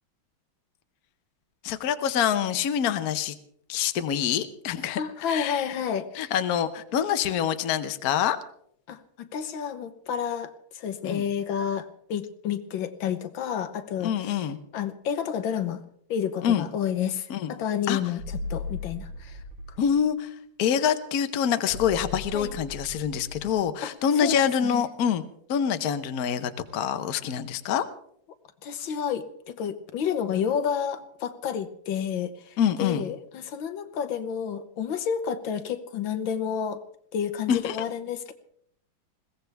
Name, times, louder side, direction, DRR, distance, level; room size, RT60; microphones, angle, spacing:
voice 1, 1.6-3.4 3.7-5.0 5.3-5.7 6.1-8.4 11.0-11.2 14.0-14.6 16.4-16.6 17.3-17.5 17.9-18.0 19.8-20.3 20.6-25.2 25.5-27.8 32.6-33.1 37.5-37.9, left 8 dB, 55° left, 10 dB, 1.2 m, -26 dB
voice 2, 5.0-6.3 8.9-14.5 14.7-15.8 16.1-19.4 22.3-22.5 23.8-23.9 24.2-24.3 24.6-24.9 28.6-36.8 37.1-38.3, left 8 dB, 75° left, 10 dB, 1.7 m, -30 dB
sound 1, 18.2-20.0 21.6-23.6, left 2 dB, 70° right, 3.3 m, -37 dB
21.5 x 17.0 x 3.4 m, 0.67 s
omnidirectional pair, 2.2 m